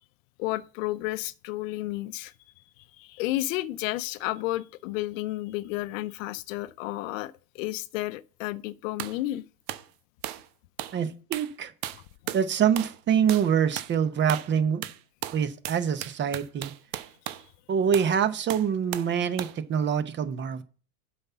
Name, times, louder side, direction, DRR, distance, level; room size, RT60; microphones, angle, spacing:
voice 1, 0.4-2.3 3.0-9.4, left 17 dB, 60° left, 0.7 m, -32 dB
sound 1, 9.0-9.2 9.7-9.9 10.2-10.5 10.8-11.0 11.3-11.5 11.8-12.5 12.8-13.0 13.3-13.5 13.8-13.9 14.3-14.5 14.8-17.5 17.9-18.1 18.5-19.1 19.4-19.6, right 13 dB, 45° right, 1.0 m, -36 dB
voice 2, 10.9-11.7 12.3-14.8 15.3-16.7 17.7-20.6, right 8 dB, 25° right, 0.8 m, -25 dB
8.0 x 5.9 x 6.8 m
hypercardioid pair, 120°, 45 cm